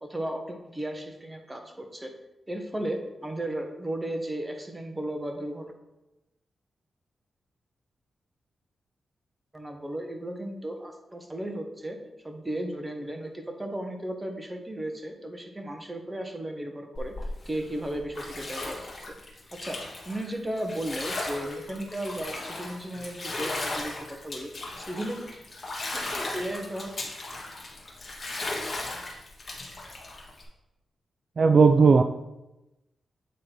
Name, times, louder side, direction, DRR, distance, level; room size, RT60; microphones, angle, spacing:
voice 1, 0.0-2.1 2.5-5.7 9.5-12.0 12.2-17.1 17.4-18.8 19.1-19.2 19.5-19.8 20.0-23.9 24.2-24.5 24.8-25.3 25.9-26.9, right 1 dB, 15° right, 4 dB, 1.1 m, -35 dB
Bathtub (filling or washing), 16.9-30.4, left 2 dB, 40° left, 1.5 m, -36 dB
voice 2, 31.4-32.0, right 5 dB, 50° right, 7 dB, 0.3 m, -16 dB
8.4 x 3.8 x 4.5 m, 0.96 s
cardioid pair, 90°, 0 cm